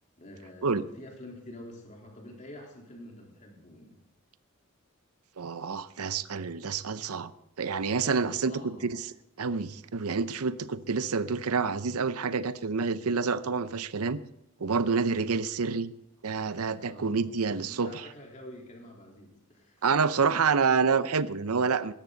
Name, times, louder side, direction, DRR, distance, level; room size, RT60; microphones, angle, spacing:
voice 1, 0.2-4.0 8.0-8.9 15.0-15.4 16.8-17.2 17.7-19.8, left 1 dB, 35° left, -1 dB, 3.7 m, -47 dB
voice 2, 5.4-7.3 7.6-9.1 9.4-14.2 14.6-15.9 16.2-18.1 19.8-21.9, right 5 dB, 90° right, 14 dB, 0.7 m, -28 dB
17.5 x 13.5 x 4.0 m, 0.83 s
head